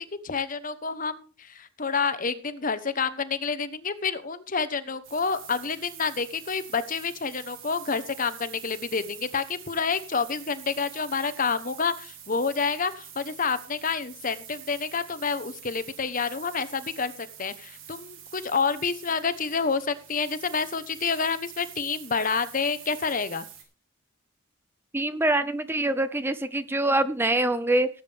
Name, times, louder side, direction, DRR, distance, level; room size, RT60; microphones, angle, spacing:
voice 1, 0.2-23.5, left 5 dB, 45° left, 12 dB, 1.0 m, -28 dB
sound 1, 5.0-23.6, right 9 dB, 80° right, 3.8 m, -46 dB
voice 2, 24.9-27.9, right 1 dB, 10° right, 12 dB, 0.7 m, -24 dB
18.5 x 8.9 x 3.5 m, 0.35 s
head